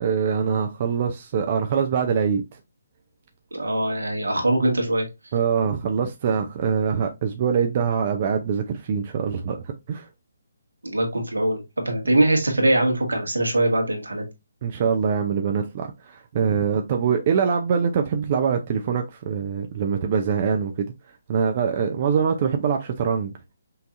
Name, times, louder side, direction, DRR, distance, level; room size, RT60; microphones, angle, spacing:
voice 1, 0.0-2.4 5.3-10.1 14.6-20.9 21.3-23.3, right 6 dB, 40° right, 0.6 m, -24 dB
voice 2, 3.5-5.1 10.8-14.3, right 1 dB, 80° right, 1.7 m, -22 dB
5.7 x 2.7 x 2.5 m
figure-of-eight pair, 140°, 0 cm